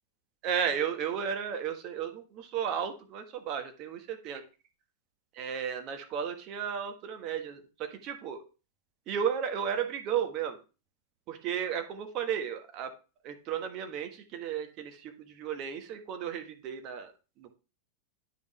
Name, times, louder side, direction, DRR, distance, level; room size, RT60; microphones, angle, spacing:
voice 1, 0.4-4.4 5.3-8.4 9.1-10.6 11.3-12.9 13.2-17.1 17.4-17.5, right 8 dB, 40° right, 6 dB, 1.3 m, -34 dB
9.2 x 5.4 x 3.2 m, 0.33 s
figure-of-eight pair, 90°, 0 cm